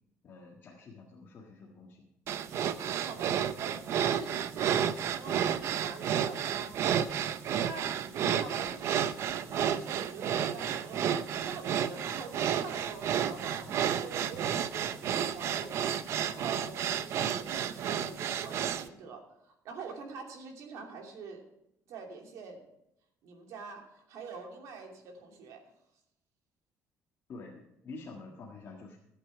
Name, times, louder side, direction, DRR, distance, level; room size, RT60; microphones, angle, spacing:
voice 1, 0.2-2.1 13.6-13.8 27.3-29.0, left 3 dB, 40° left, -3 dB, 1.7 m, -48 dB
sound 1, 2.3-18.9, right 9 dB, 55° right, 0.6 m, -31 dB
voice 2, 2.8-7.2 7.6-21.4 21.9-22.7 23.2-25.6, right 5 dB, 70° right, 2 dB, 2.8 m, -45 dB
15.5 x 8.3 x 4.6 m, 0.80 s
cardioid pair, 170°, 6 cm